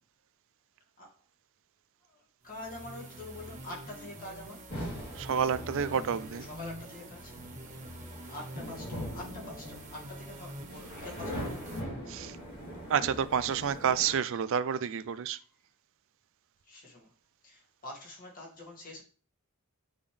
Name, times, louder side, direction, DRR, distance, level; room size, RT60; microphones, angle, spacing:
voice 1, 2.1-4.7 6.5-7.4 8.3-11.8 16.6-17.1 17.4-19.0, left 2 dB, 40° left, 2.2 m, -46 dB
sound 1, 2.4-11.8, right 1 dB, 30° right, 1.3 m, -46 dB
sound 2, 4.7-14.1, equal, 70° left, 3.5 m, -42 dB
voice 2, 5.2-6.5 12.1-12.4 12.9-15.4, right 7 dB, 60° right, 0.4 m, -29 dB
8.9 x 3.5 x 3.4 m
head